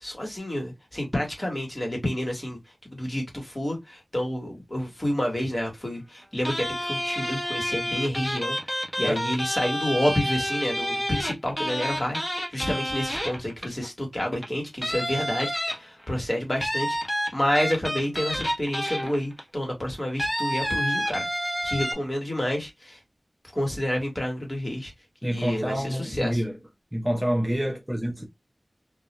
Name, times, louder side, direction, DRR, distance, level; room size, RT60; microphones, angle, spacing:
voice 1, 0.0-2.6 2.9-8.6 9.0-12.2 12.5-15.5 15.8-17.0 17.3-21.3 21.6-23.0 23.5-24.9 25.2-26.4, left 1 dB, 30° left, 1.1 m, -29 dB
sound 1, 6.4-13.9 14.3-14.5 14.8-16.1 16.6-19.4 20.2-21.9, equal, 10° left, 0.8 m, -29 dB
voice 2, 25.2-26.6 26.9-28.3, equal, 15° right, 0.6 m, -27 dB
2.2 x 2.1 x 2.8 m
wide cardioid pair, 60°, 0 cm